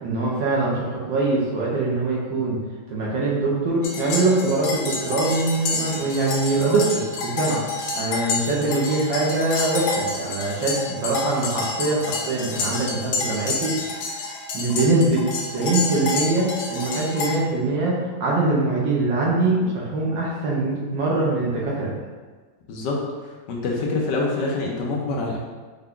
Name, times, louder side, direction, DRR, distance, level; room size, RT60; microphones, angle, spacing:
voice 1, 0.0-2.6 2.9-7.6 7.9-13.8 14.1-14.2 14.5-21.9, right 2 dB, 70° right, -5 dB, 1.6 m, -23 dB
sound 1, 3.8-17.3, left 3 dB, 85° left, 1.4 m, -29 dB
voice 2, 22.7-23.0 23.5-25.4, left 3 dB, 65° left, -2 dB, 1.3 m, -25 dB
5.6 x 2.4 x 3.7 m, 1.4 s
omnidirectional pair, 2.1 m